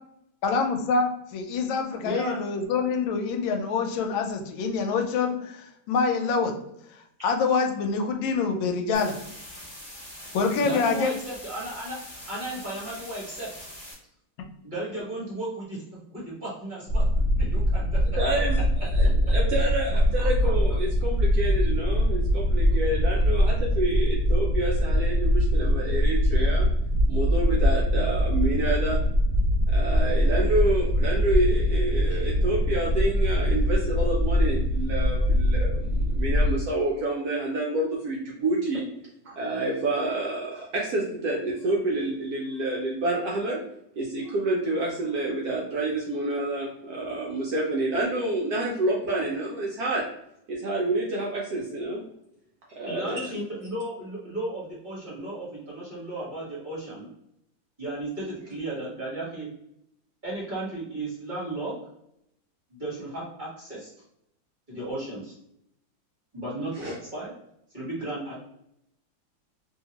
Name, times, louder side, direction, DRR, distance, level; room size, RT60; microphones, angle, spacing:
voice 1, 0.4-6.5 6.9-9.1 10.3-11.1, left 4 dB, 85° left, 4 dB, 1.3 m, -26 dB
voice 2, 2.0-2.4 10.2-10.3 10.6-12.0 12.3-13.5 14.6-15.8 16.1-17.0 17.3-18.0 20.2-20.5 49.1-49.2 52.9-57.1 57.8-59.5 60.2-61.7 62.7-63.9 64.7-65.3 66.3-67.3 67.7-68.4, right 1 dB, 30° right, -7 dB, 1.0 m, -34 dB
sound 1, 8.9-13.9, left 1 dB, 20° left, 1.2 m, -43 dB
sound 2, 16.9-36.5, equal, 50° left, 0.8 m, -23 dB
voice 3, 18.2-18.6 18.9-26.7 27.1-29.0 29.7-38.8 39.3-43.6 44.0-50.0 50.5-52.0 52.7-53.3 66.7-66.9, right 2 dB, 70° right, -3 dB, 0.9 m, -28 dB
2.8 x 2.8 x 2.8 m, 0.76 s
omnidirectional pair, 2.1 m